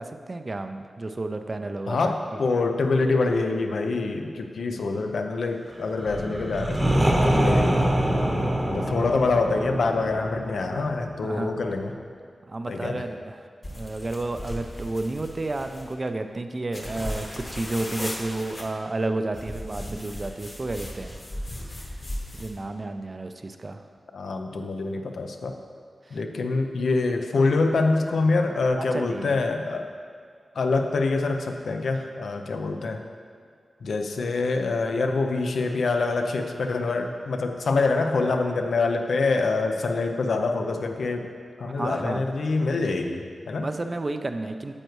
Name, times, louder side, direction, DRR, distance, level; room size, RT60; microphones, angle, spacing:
voice 1, 0.0-2.1 4.6-5.0 8.2-8.8 11.2-11.6 12.5-13.5 13.7-21.1 21.8-22.0 22.3-23.8 26.0-26.2 28.8-29.4 41.7-42.3 43.6-44.7, right 2 dB, 30° right, 7 dB, 0.4 m, -32 dB
voice 2, 1.9-7.8 8.7-11.9 12.7-13.0 24.1-25.5 26.1-29.9 30.5-33.0 33.8-41.3 41.6-43.7, left 3 dB, 85° left, 5 dB, 0.6 m, -25 dB
sound 1, 6.0-11.8, right 1 dB, 15° right, 0.9 m, -25 dB
sound 2, 13.6-15.9 16.7-18.6 19.3-22.6, left 1 dB, 30° left, 1.0 m, -37 dB
9.8 x 7.8 x 3.1 m, 2.1 s
wide cardioid pair, 155°, 0 cm